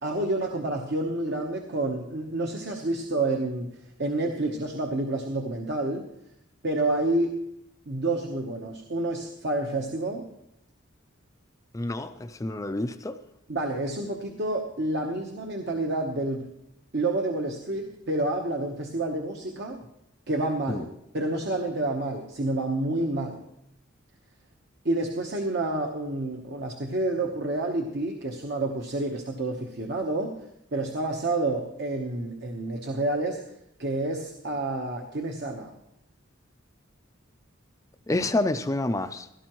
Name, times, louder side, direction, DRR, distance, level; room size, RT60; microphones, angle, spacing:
voice 1, 0.0-6.1 6.6-7.4 7.9-10.3 13.5-16.5 16.9-19.8 20.3-23.4 24.8-30.4 30.7-33.4 33.8-35.7, right 2 dB, 55° right, 2 dB, 1.0 m, -29 dB
voice 2, 11.7-13.2 20.7-20.9 38.1-39.3, left 2 dB, 15° left, 10 dB, 0.4 m, -28 dB
16.5 x 12.5 x 3.0 m, 0.79 s
head